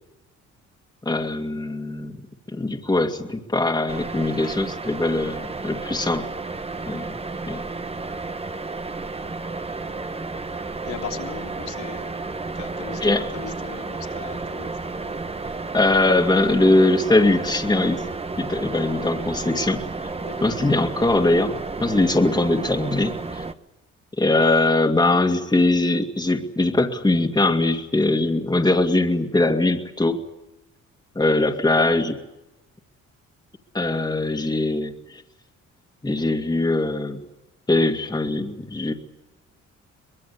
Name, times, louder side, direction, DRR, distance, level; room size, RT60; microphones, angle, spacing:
voice 1, 1.0-2.2 2.5-6.2 6.9-7.2 7.5-7.7 13.0-13.3 15.7-18.0 18.4-19.8 20.4-23.4 24.2-30.2 31.2-32.2 33.7-35.2 36.0-37.2 37.7-38.9, left 2 dB, 15° left, 3 dB, 2.2 m, -21 dB
sound 1, 3.9-23.5, right 3 dB, 20° right, 1.1 m, -32 dB
voice 2, 10.9-12.2 12.5-15.3 20.2-20.5, left 8 dB, 75° left, -1 dB, 3.5 m, -38 dB
24.0 x 21.0 x 8.5 m, 0.96 s
cardioid pair, 90°, 30 cm